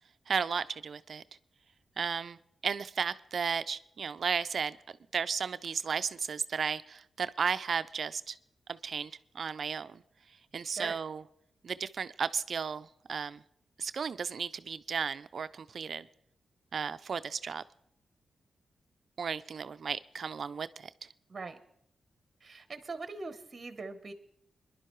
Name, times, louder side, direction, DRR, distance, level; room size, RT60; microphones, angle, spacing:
voice 1, 0.3-1.2 2.0-2.4 2.6-4.8 5.1-8.4 8.7-10.0 10.5-11.2 11.6-13.4 13.8-16.1 16.7-17.6 19.2-20.9, right 6 dB, 60° right, 13 dB, 0.4 m, -34 dB
voice 2, 22.4-24.1, right 4 dB, 40° right, 9 dB, 0.8 m, -41 dB
22.5 x 11.0 x 3.1 m, 0.73 s
cardioid pair, 85°, 0 cm